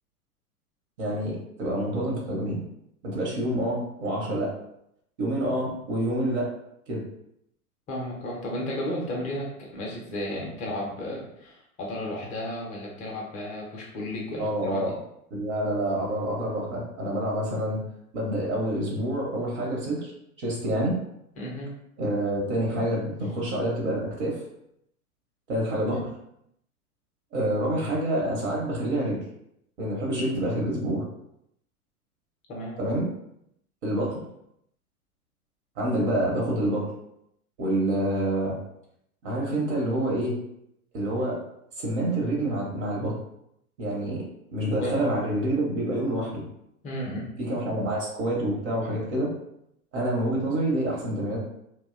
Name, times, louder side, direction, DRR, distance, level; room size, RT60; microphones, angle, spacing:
voice 1, 1.0-2.6 3.0-4.5 5.2-6.5 6.9-7.0 14.4-14.9 15.3-17.8 18.1-20.1 20.4-20.9 22.0-24.4 25.5-26.1 27.3-29.2 29.8-31.0 32.8-33.0 33.8-34.2 35.8-36.9 37.6-38.5 39.2-40.4 40.9-41.4 41.8-43.1 43.8-44.2 44.5-46.4 47.4-49.3 49.9-51.4, right 1 dB, 50° right, -2 dB, 0.8 m, -27 dB
voice 2, 7.9-15.0 21.4-21.7 25.8-26.0 32.5-32.8 44.8-45.1 46.8-47.3, left 1 dB, 20° left, -2 dB, 0.4 m, -33 dB
2.6 x 2.0 x 2.4 m, 0.77 s
hypercardioid pair, 105°, 44 cm